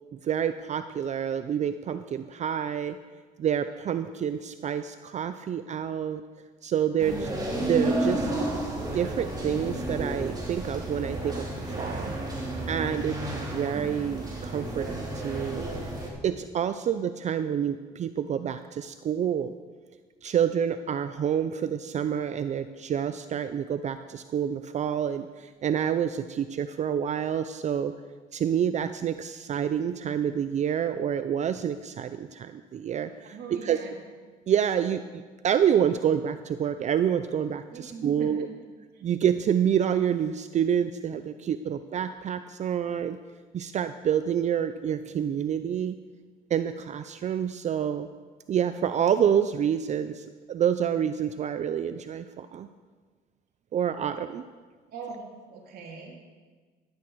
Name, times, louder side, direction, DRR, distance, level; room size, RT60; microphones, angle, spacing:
voice 1, 0.1-3.0 3.4-6.2 6.6-7.3 7.6-8.3 8.9-12.1 12.7-15.6 16.2-19.5 20.2-27.9 28.3-33.8 34.5-38.5 39.0-43.2 43.5-46.0 46.5-48.1 48.5-52.7 53.7-54.4, right 8 dB, 45° right, 11 dB, 0.5 m, -28 dB
sound 1, 7.0-16.1, right 1 dB, 20° right, 3.1 m, -31 dB
voice 2, 33.2-34.0 37.7-38.6 38.9-39.0 54.9-56.2, right 5 dB, 65° right, 0 dB, 2.8 m, -42 dB
15.0 x 11.5 x 4.7 m, 1.4 s
cardioid pair, 110°, 17 cm